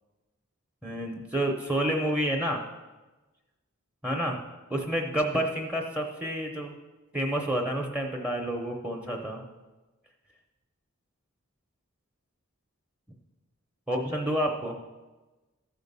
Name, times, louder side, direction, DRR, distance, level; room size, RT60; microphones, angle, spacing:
voice 1, 0.8-2.6 4.0-4.4 4.7-6.7 7.1-9.4 13.9-14.8, right 1 dB, 5° right, 1 dB, 0.7 m, -29 dB
13.0 x 5.1 x 5.4 m, 1.2 s
head